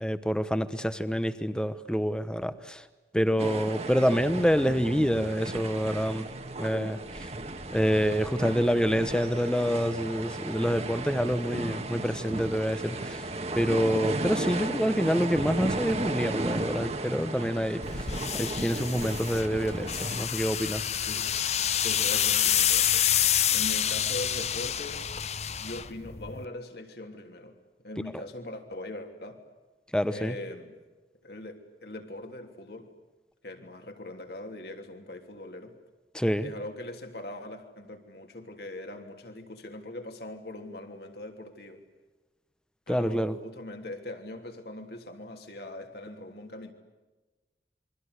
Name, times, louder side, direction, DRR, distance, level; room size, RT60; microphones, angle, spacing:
voice 1, 0.0-2.8 3.1-6.3 6.6-7.0 7.7-13.2 13.5-18.1 18.3-20.9 29.9-30.3 36.1-36.5 42.9-43.4, equal, 5° left, 1.0 m, -27 dB
sound 1, 3.4-20.3, right 2 dB, 35° right, 1.6 m, -35 dB
sound 2, 17.8-26.5, left 10 dB, 35° left, 0.8 m, -28 dB
voice 2, 20.7-21.3 21.8-23.1 23.5-25.1 25.6-27.6 27.8-29.4 30.1-30.7 31.2-32.9 33.4-35.8 36.4-41.8 42.9-46.7, left 1 dB, 60° left, 3.2 m, -41 dB
28.0 x 23.5 x 8.2 m
head